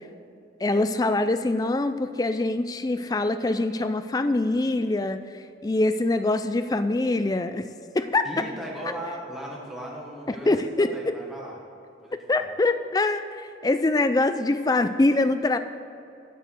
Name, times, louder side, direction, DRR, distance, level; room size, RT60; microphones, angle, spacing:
voice 1, 0.6-5.2 5.6-7.7 7.9-8.2 10.3-11.1 12.3-15.6, left 2 dB, 20° left, 10 dB, 0.3 m, -24 dB
voice 2, 8.2-11.6 12.0-12.5, right 1 dB, ahead, -4 dB, 1.4 m, -37 dB
9.1 x 6.8 x 6.4 m, 2.7 s
head